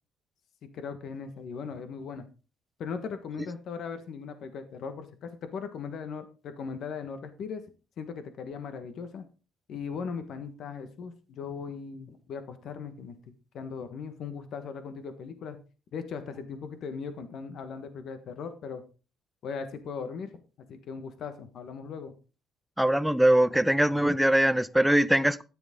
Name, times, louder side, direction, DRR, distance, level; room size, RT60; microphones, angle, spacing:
voice 1, 0.7-2.2 2.8-7.6 8.0-9.2 9.7-13.2 13.5-15.6 15.9-18.8 19.4-20.3 20.7-22.1, left 6 dB, 55° left, 1.4 m, -38 dB
voice 2, 22.8-25.4, right 1 dB, 5° right, 0.5 m, -22 dB
13.5 x 10.0 x 3.7 m
cardioid pair, 155°, 0 cm